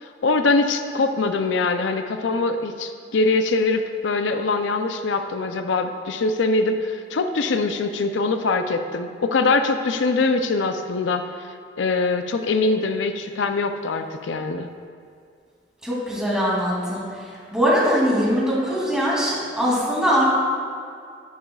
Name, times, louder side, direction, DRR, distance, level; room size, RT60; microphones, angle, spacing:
voice 1, 0.0-11.5 11.8-14.7, left 3 dB, 80° left, 7 dB, 0.5 m, -23 dB
voice 2, 15.8-17.0 17.5-20.2, equal, 5° right, -7 dB, 2.6 m, -21 dB
12.0 x 11.5 x 2.3 m, 2.3 s
head